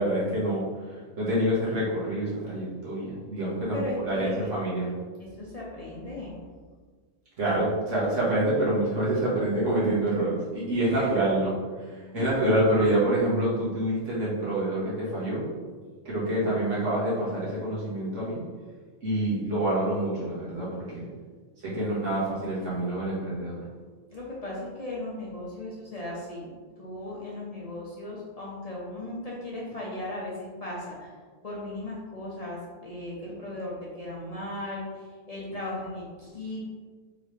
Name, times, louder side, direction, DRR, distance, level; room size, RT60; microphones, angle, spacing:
voice 1, 0.0-4.9 7.4-11.5 11.8-15.4 16.1-18.4 19.0-21.1 21.6-23.6, right 1 dB, 80° right, -8 dB, 1.7 m, -27 dB
voice 2, 3.7-4.5 5.2-6.4 10.8-11.2 12.1-12.4 24.1-31.2 31.4-36.7, left 1 dB, 40° left, -5 dB, 0.6 m, -37 dB
3.8 x 3.2 x 3.1 m, 1.5 s
omnidirectional pair, 1.3 m